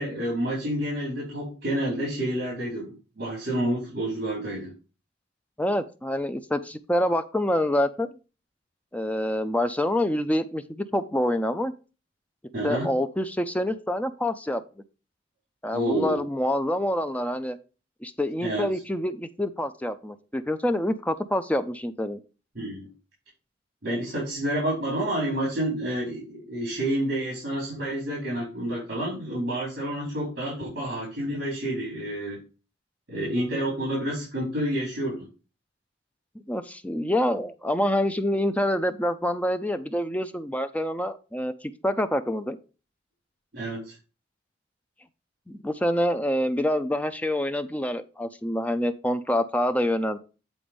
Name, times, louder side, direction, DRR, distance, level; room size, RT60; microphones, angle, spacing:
voice 1, 0.0-4.7 12.5-12.9 15.7-16.2 18.4-18.7 22.5-22.9 23.8-32.4 33.1-35.3 43.5-43.9, right 1 dB, 55° right, -5 dB, 4.0 m, -29 dB
voice 2, 5.6-8.2 8.9-11.7 12.6-14.6 15.6-17.6 18.0-22.2 36.5-42.6 45.5-50.2, left 1 dB, 10° left, 10 dB, 0.5 m, -26 dB
8.7 x 4.2 x 5.2 m, 0.33 s
head